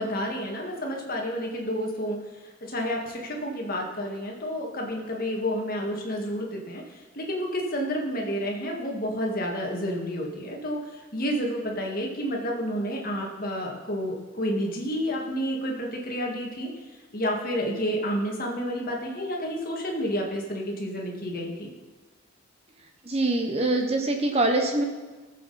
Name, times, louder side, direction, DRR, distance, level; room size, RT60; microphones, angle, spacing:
voice 1, 0.0-2.2 2.6-16.7 17.1-21.7, equal, 40° left, 0 dB, 1.9 m, -30 dB
voice 2, 23.0-24.8, right 2 dB, 30° right, 3 dB, 1.0 m, -24 dB
18.0 x 7.5 x 4.2 m, 1.3 s
head